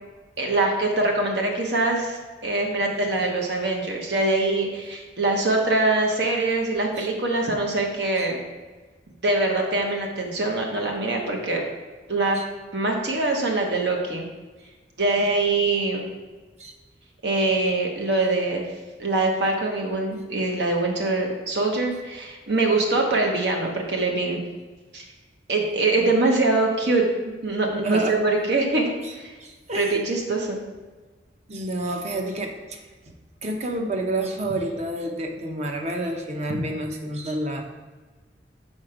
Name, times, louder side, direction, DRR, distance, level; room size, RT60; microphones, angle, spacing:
voice 1, 0.4-8.4 9.2-11.6 12.1-12.4 12.7-14.3 15.0-16.0 17.2-18.6 19.0-24.4 24.9-25.0 25.5-27.1 27.4-28.9 29.2-29.3 29.8-30.6 36.5-36.6, right 2 dB, 65° right, 1 dB, 1.0 m, -23 dB
voice 2, 27.8-28.3 29.0-29.1 29.4-30.0 31.5-32.8 33.1-33.2 33.4-37.6, right 1 dB, 40° right, 3 dB, 0.8 m, -29 dB
6.3 x 4.3 x 4.9 m, 1.3 s
head